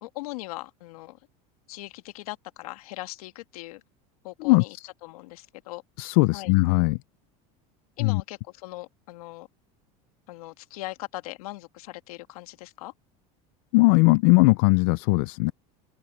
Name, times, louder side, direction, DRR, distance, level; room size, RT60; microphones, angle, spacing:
voice 1, 0.0-1.2 1.7-3.8 4.2-4.8 5.0-5.8 6.3-6.5 8.0-9.5 10.3-12.9, left 19 dB, 90° left, 1.9 m, -39 dB
voice 2, 6.0-7.0 8.0-8.2 13.7-15.5, left 25 dB, 70° left, 0.5 m, -19 dB
open air
supercardioid pair, 125°, 18 cm